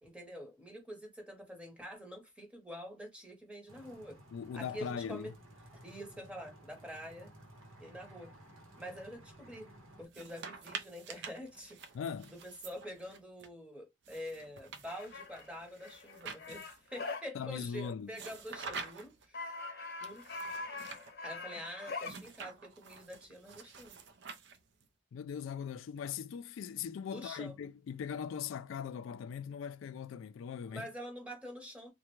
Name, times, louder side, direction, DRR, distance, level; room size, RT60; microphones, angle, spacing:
voice 1, 0.0-4.2 4.5-5.3 5.8-7.3 7.8-8.3 8.8-9.7 10.0-11.8 12.3-19.5 20.0-20.2 21.2-24.0 27.1-27.6 30.6-31.9, equal, 5° right, 0.9 m, -46 dB
sound 1, 3.7-10.1, right 1 dB, 85° right, 0.9 m, -56 dB
voice 2, 4.3-5.3 11.9-12.3 17.3-18.1 25.1-30.9, left 7 dB, 75° left, 0.3 m, -40 dB
sound 2, 10.0-13.5 14.0-16.9 18.1-19.3 20.0-21.1 22.0-24.8, right 5 dB, 60° right, 0.5 m, -48 dB
sound 3, 14.9-17.3 19.3-22.2, left 3 dB, 55° left, 0.9 m, -43 dB
3.4 x 2.1 x 3.0 m
head